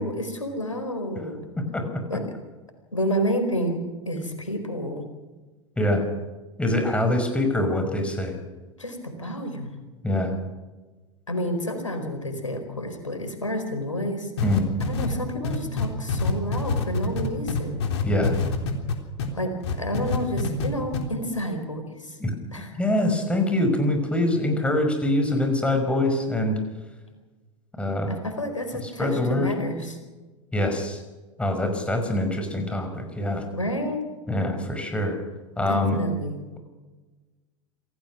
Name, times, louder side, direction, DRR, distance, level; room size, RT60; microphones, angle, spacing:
voice 1, 0.0-1.4 2.1-2.2 2.9-3.8 4.1-5.0 8.8-9.8 11.3-14.3 14.8-17.8 19.3-22.2 22.5-22.7 28.1-30.0 33.5-34.0 35.7-36.4, equal, 85° left, 6 dB, 4.6 m, -30 dB
voice 2, 6.6-8.3 10.0-10.3 14.4-14.7 18.0-18.3 22.2-22.3 22.7-26.6 27.8-28.2 28.8-29.5 30.5-31.0 31.4-33.4 34.3-35.2 35.6-36.0, left 1 dB, 5° left, 5 dB, 5.4 m, -24 dB
sound 1, 14.4-19.3 19.6-20.7 20.9-21.0, left 4 dB, 60° left, 3.6 m, -25 dB
27.0 x 17.5 x 6.2 m, 1.2 s
figure-of-eight pair, 85°, 16 cm